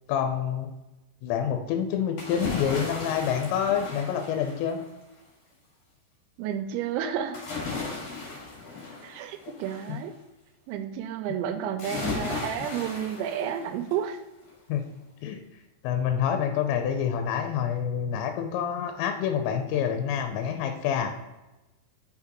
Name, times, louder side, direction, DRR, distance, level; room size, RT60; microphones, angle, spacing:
voice 1, 0.1-0.7 1.2-4.8 9.9-10.0 14.7-14.9 15.2-15.4 15.8-21.2, left 8 dB, 80° left, 6 dB, 2.7 m, -27 dB
sound 1, 2.2-5.0 7.3-10.0 11.8-14.1 14.5-14.6, left 3 dB, 55° left, 2.0 m, -36 dB
voice 2, 6.4-7.4 9.0-10.1 10.7-14.2, right 9 dB, 85° right, 8 dB, 2.8 m, -31 dB
5.9 x 5.8 x 2.9 m, 1.0 s
omnidirectional pair, 5.4 m